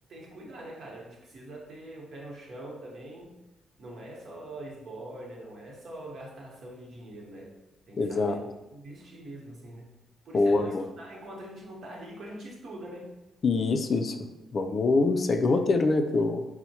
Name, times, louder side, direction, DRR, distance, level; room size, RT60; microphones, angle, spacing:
voice 1, 0.1-3.3 3.8-7.5 7.9-9.9 10.2-13.1, right 1 dB, 55° right, -2 dB, 1.0 m, -43 dB
voice 2, 8.0-8.4 10.3-10.8 13.4-14.2 14.5-16.5, left 3 dB, 45° left, 7 dB, 0.3 m, -24 dB
4.2 x 2.1 x 2.8 m, 0.98 s
cardioid pair, 90°, 0 cm